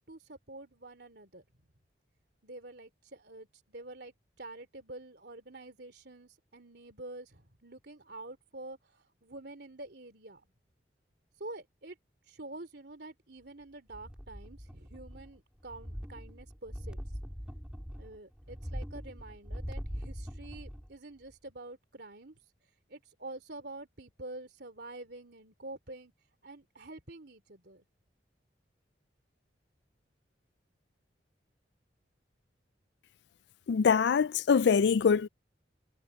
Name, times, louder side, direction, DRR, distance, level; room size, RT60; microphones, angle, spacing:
voice 1, 0.0-1.5 2.4-10.4 11.4-12.0 12.3-17.0 18.0-22.4 22.9-26.1 26.4-27.8, right 2 dB, 60° right, 3.6 m, -47 dB
sound 1, 13.9-15.4 15.6-20.9 21.3-21.4, equal, 5° right, 3.4 m, -42 dB
voice 2, 33.7-35.3, left 6 dB, 70° left, 0.4 m, -24 dB
head